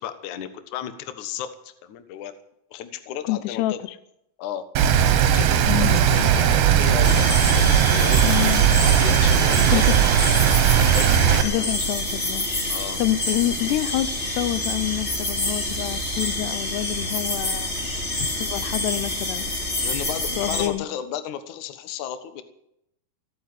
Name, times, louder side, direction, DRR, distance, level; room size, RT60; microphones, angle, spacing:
voice 1, 0.0-2.3 2.7-3.8 4.4-4.6 5.3-5.5 5.8-7.2 7.5-8.5 9.0-10.0 10.9-11.7 12.7-13.0 18.2-18.3 19.8-22.4, left 9 dB, 60° left, 10 dB, 2.3 m, -33 dB
voice 2, 3.2-3.7 5.7-6.0 8.2-8.8 9.7-10.0 11.4-12.5 13.0-17.7 18.4-19.5 20.4-20.9, left 15 dB, 80° left, 15 dB, 2.9 m, -27 dB
Rain, 4.8-11.4, right 9 dB, 70° right, 2.8 m, -18 dB
sound 1, 7.0-20.7, left 1 dB, 20° left, 2.4 m, -27 dB
17.5 x 8.5 x 9.7 m, 0.78 s
omnidirectional pair, 4.8 m